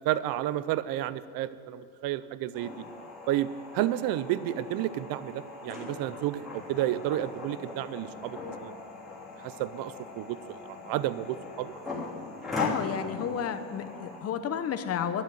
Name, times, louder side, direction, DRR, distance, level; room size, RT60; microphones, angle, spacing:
voice 1, 0.0-2.8 3.3-8.7 9.4-11.7, right 13 dB, 55° right, 16 dB, 0.6 m, -31 dB
sound 1, 2.5-14.2, left 2 dB, ahead, 3.3 m, -40 dB
voice 2, 12.6-15.2, left 8 dB, 35° left, 9 dB, 0.9 m, -31 dB
12.0 x 7.4 x 9.3 m, 2.7 s
cardioid pair, 130°, 42 cm